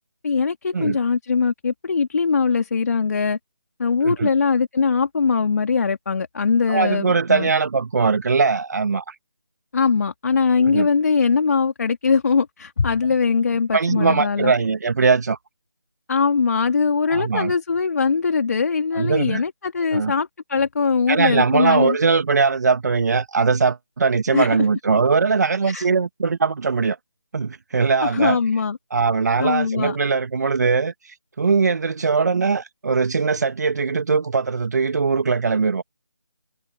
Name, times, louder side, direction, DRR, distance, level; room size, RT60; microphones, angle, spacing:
voice 1, 0.2-3.4 3.8-7.5 9.7-14.5 16.1-22.0 24.3-24.6 25.7-25.8 28.0-28.8 29.4-30.0, left 5 dB, 40° left, 2.6 m, -21 dB
voice 2, 6.7-9.2 10.6-10.9 13.7-15.4 17.1-17.5 18.9-19.4 19.9-20.1 21.1-27.0 27.3-28.4 28.9-35.8, right 4 dB, 40° right, 1.8 m, -20 dB
figure-of-eight pair, 155°, 13 cm